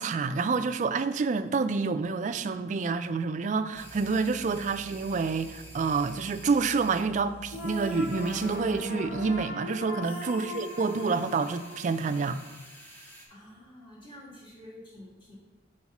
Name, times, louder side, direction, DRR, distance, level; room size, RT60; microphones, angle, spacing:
voice 1, 0.0-12.4, right 4 dB, 40° right, 11 dB, 0.3 m, -28 dB
sound 1, 3.7-8.7 9.0-9.4 10.0-13.2, equal, 10° left, 0.9 m, -48 dB
sound 2, 7.5-12.5, left 1 dB, 65° left, 0.9 m, -38 dB
voice 2, 13.3-15.4, left 1 dB, 25° left, -6 dB, 2.0 m, -49 dB
4.7 x 4.2 x 5.9 m, 1.2 s
head